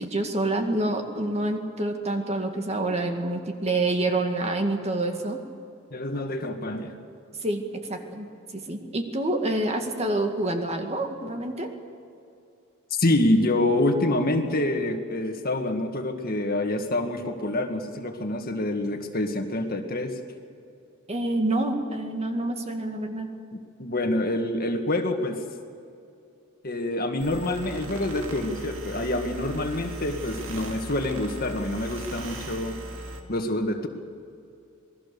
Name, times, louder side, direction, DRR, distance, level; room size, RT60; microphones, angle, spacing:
voice 1, 0.0-5.4 7.4-7.6 7.9-8.3 8.5-11.7 21.1-23.3, right 2 dB, 30° right, 4 dB, 2.0 m, -27 dB
voice 2, 5.9-7.0 12.9-20.1 23.8-25.4 26.6-32.8 33.3-33.9, left 1 dB, 45° left, 5 dB, 1.9 m, -26 dB
sound 1, 27.2-33.2, right 1 dB, 70° right, 2.5 m, -38 dB
27.0 x 19.5 x 7.0 m, 2.6 s
head